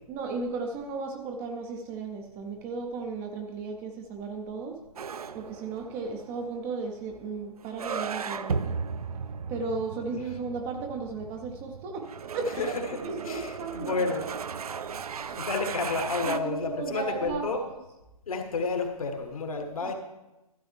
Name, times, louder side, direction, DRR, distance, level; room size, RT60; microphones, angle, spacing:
voice 1, 0.1-4.7 5.3-8.8 9.5-12.1 12.3-14.1 15.2-15.4 16.3-17.7 19.6-19.9, right 4 dB, 10° right, 3 dB, 0.4 m, -35 dB
sound 1, 5.0-16.4, right 6 dB, 75° right, 0.5 m, -36 dB
voice 2, 12.6-14.3 15.4-17.6 18.3-19.9, left 4 dB, 65° left, 5 dB, 1.5 m, -30 dB
12.5 x 8.2 x 3.2 m, 0.99 s
figure-of-eight pair, 140°, 19 cm